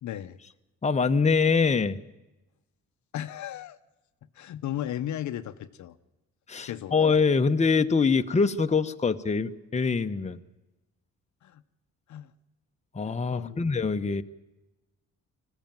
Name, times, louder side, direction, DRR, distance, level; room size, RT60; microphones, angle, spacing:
voice 1, 0.0-0.4 3.1-3.8 4.4-6.0 6.7-6.9 11.4-11.6 12.1-12.3 13.3-13.6, left 11 dB, 70° left, 11 dB, 0.9 m, -35 dB
voice 2, 0.8-2.0 6.5-10.4 12.9-14.2, left 5 dB, 20° left, 8 dB, 1.0 m, -24 dB
21.0 x 14.5 x 9.0 m, 1.0 s
cardioid pair, 90°, 30 cm